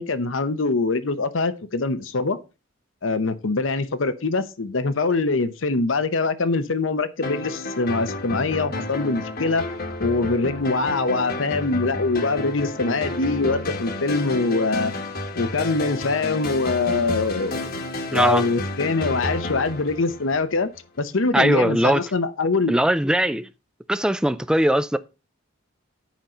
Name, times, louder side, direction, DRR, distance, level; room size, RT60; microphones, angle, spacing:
voice 1, 0.0-2.4 3.0-9.7 10.0-14.9 15.3-17.8 18.1-20.7 21.0-22.7, left 3 dB, 80° left, 0.8 m, -23 dB
sound 1, 7.2-20.8, left 2 dB, 50° left, 1.2 m, -31 dB
voice 2, 18.1-18.4 21.3-22.0 22.7-23.5 23.9-25.0, right 1 dB, 5° right, 0.4 m, -20 dB
10.5 x 5.2 x 4.3 m
head